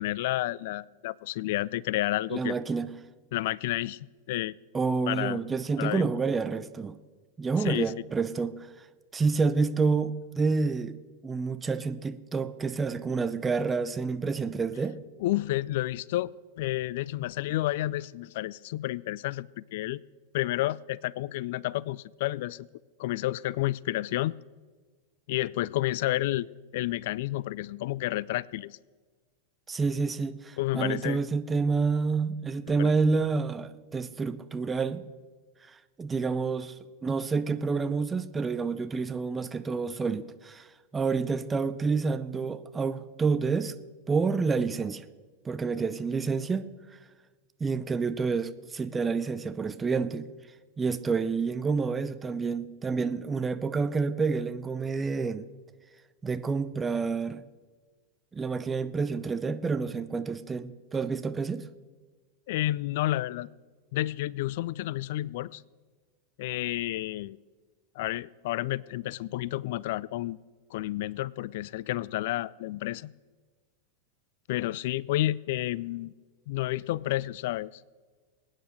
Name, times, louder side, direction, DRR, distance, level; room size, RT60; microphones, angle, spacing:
voice 1, 0.0-2.6 3.3-4.0 4.3-4.5 5.1-5.4 5.8-6.1 7.6-7.9 15.2-20.0 20.3-22.7 23.0-24.3 25.3-28.8 30.6-31.2 32.8-32.9 62.5-63.5 63.9-65.6 66.4-67.4 68.0-70.4 70.7-73.1 74.5-76.1 76.5-77.8, left 16 dB, 50° left, 0.4 m, -30 dB
voice 2, 2.3-2.9 4.7-6.9 7.4-8.8 9.1-11.0 11.2-15.0 29.7-35.0 35.7-36.7 37.0-40.7 40.9-43.7 44.1-45.0 45.4-46.7 47.6-50.3 50.8-55.5 56.2-57.4 58.3-61.7, right 4 dB, 15° right, 0.8 m, -28 dB
21.5 x 9.3 x 6.4 m
figure-of-eight pair, 90°, 0 cm